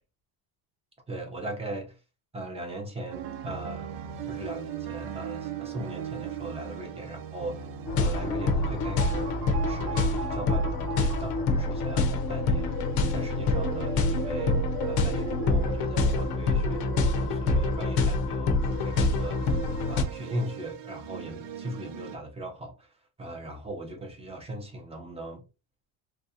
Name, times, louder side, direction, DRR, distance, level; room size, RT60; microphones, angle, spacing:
voice 1, 1.1-2.0 2.3-3.9 4.3-7.7 8.0-9.4 9.7-12.7 13.1-19.5 19.9-22.9 23.2-25.4, right 1 dB, 15° right, 0.6 m, -39 dB
sound 1, 3.1-22.2, right 9 dB, 80° right, 0.8 m, -39 dB
sound 2, 7.9-20.0, left 3 dB, 55° left, 0.6 m, -26 dB
3.4 x 2.6 x 2.6 m
cardioid pair, 155°, 43 cm